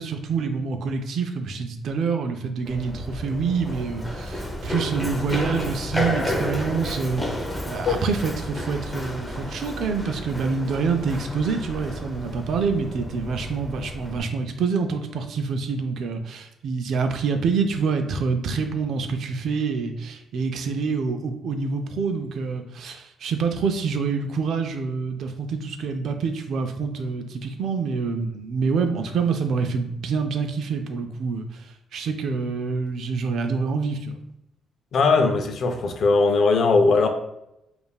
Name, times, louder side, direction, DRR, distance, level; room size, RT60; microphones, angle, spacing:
voice 1, 0.0-7.4 7.7-31.6 31.9-34.2, right 5 dB, 70° right, 6 dB, 0.4 m, -26 dB
Run, 2.6-14.2, equal, 5° left, 0.6 m, -31 dB
voice 2, 34.9-37.1, left 4 dB, 60° left, 5 dB, 0.5 m, -19 dB
5.2 x 2.5 x 2.3 m, 0.86 s
cardioid pair, 90°, 0 cm